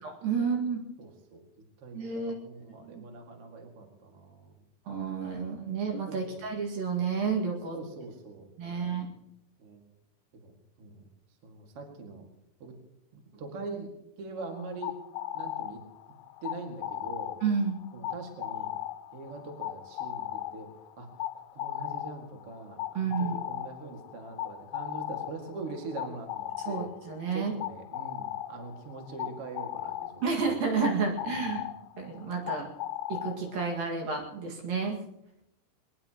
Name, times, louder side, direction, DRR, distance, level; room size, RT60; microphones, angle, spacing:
voice 1, 0.0-0.8 1.9-2.4 2.9-3.0 4.9-7.8 8.6-9.1 17.4-17.8 23.0-23.4 26.7-27.5 30.2-31.7 32.0-32.7 33.1-35.0, right 5 dB, 60° right, 1 dB, 3.4 m, -30 dB
voice 2, 1.0-1.4 1.8-4.5 6.1-6.4 7.7-9.0 9.6-9.8 10.3-10.5 10.8-11.1 11.4-12.3 12.6-12.7 13.1-13.9 14.2-14.9 15.3-15.8 16.4-17.4 17.9-18.8 19.1-20.7 21.0-21.1 21.3-26.9 27.3-31.6, right 3 dB, 40° right, 2 dB, 2.3 m, -43 dB
sound 1, 14.4-33.8, left 13 dB, 90° left, 3.2 m, -38 dB
22.0 x 20.5 x 3.0 m, 0.81 s
omnidirectional pair, 5.2 m